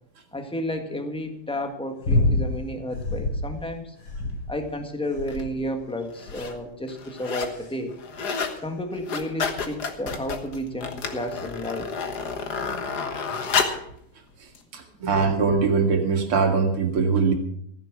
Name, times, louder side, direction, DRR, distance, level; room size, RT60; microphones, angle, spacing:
voice 1, 0.3-3.9 4.5-7.9 8.6-11.9, left 1 dB, 5° left, 5 dB, 1.3 m, -32 dB
sound 1, 2.0-2.5 2.9-3.5 4.0-4.7 5.2-5.6 6.3-6.6 7.3-7.7 8.6-8.7, left 2 dB, 70° left, 3.7 m, -26 dB
sound 2, 5.3-5.4 6.1-6.5 6.9-7.6 7.9-8.6 8.9-13.9 14.6-14.7, left 5 dB, 50° left, 1.8 m, -30 dB
voice 2, 14.7-17.3, right 5 dB, 85° right, 4 dB, 2.8 m, -22 dB
15.0 x 10.0 x 6.1 m, 0.71 s
omnidirectional pair, 2.3 m